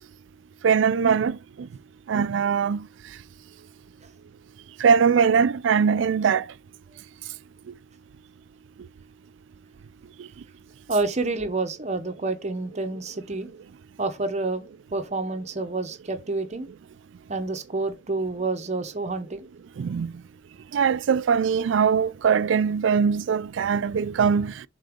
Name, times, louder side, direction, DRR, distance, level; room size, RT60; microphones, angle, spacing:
voice 1, 0.6-1.7 2.1-2.8 4.8-6.4 19.8-20.1 20.7-24.5, right 6 dB, 75° right, 0.4 m, -21 dB
voice 2, 10.9-13.5 14.0-14.6 14.9-16.7 17.3-19.5, right 3 dB, 35° right, 0.9 m, -28 dB
7.3 x 3.9 x 3.6 m
head